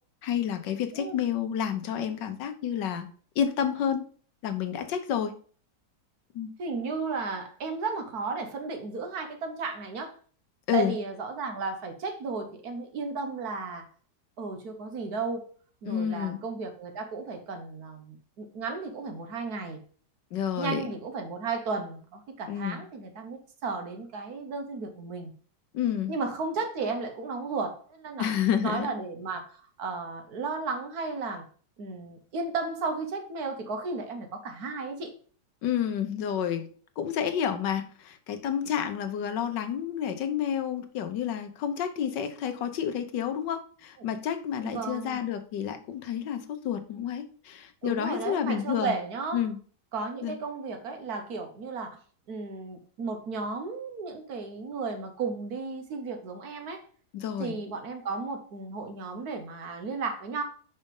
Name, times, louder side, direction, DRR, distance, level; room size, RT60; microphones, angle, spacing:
voice 1, 0.2-3.1 3.3-4.0 4.4-5.3 6.3-6.5 10.7-10.9 15.8-16.4 20.3-20.9 22.5-22.8 25.7-26.1 28.2-28.9 35.6-36.7 37.0-49.0 49.3-49.6 50.2-50.3 57.1-57.6, left 9 dB, 85° left, 8 dB, 1.6 m, -30 dB
voice 2, 6.6-10.1 10.7-13.9 14.4-15.5 15.8-19.8 20.6-25.3 26.1-28.3 28.6-31.5 31.8-35.1 44.6-45.2 47.8-49.4 49.9-52.0 52.3-56.8 57.4-60.4, right 4 dB, 60° right, 6 dB, 1.6 m, -34 dB
5.4 x 5.1 x 5.3 m, 0.43 s
omnidirectional pair, 1.9 m